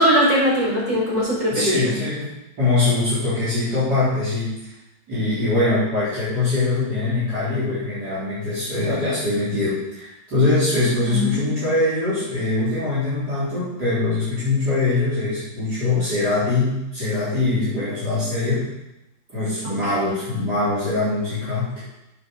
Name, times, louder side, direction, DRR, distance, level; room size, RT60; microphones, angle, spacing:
voice 1, 0.0-1.7 11.0-11.6 19.6-19.8, equal, 40° right, -6 dB, 5.3 m, -20 dB
voice 2, 1.5-2.3 2.6-4.7 5.1-18.7 19.3-21.8, left 2 dB, 60° right, -12 dB, 4.3 m, -22 dB
8.9 x 7.0 x 6.7 m, 0.92 s
omnidirectional pair, 2.0 m